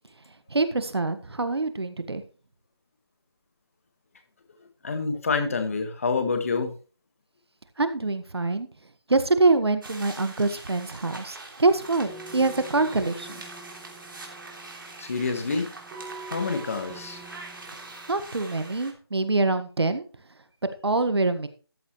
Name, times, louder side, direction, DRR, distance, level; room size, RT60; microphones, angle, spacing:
voice 1, 0.5-2.2 7.8-8.7 9.1-13.4 18.1-20.0 20.8-21.5, right 3 dB, 75° right, 10 dB, 1.6 m, -25 dB
voice 2, 4.8-6.7 15.0-15.7 16.3-17.2, left 4 dB, 35° left, 8 dB, 1.7 m, -27 dB
sound 1, 9.8-18.9, right 3 dB, 55° right, 3.1 m, -43 dB
sound 2, 11.7-18.4, right 3 dB, 5° right, 0.6 m, -46 dB
14.0 x 9.7 x 3.2 m, 0.37 s
figure-of-eight pair, 170°, 14 cm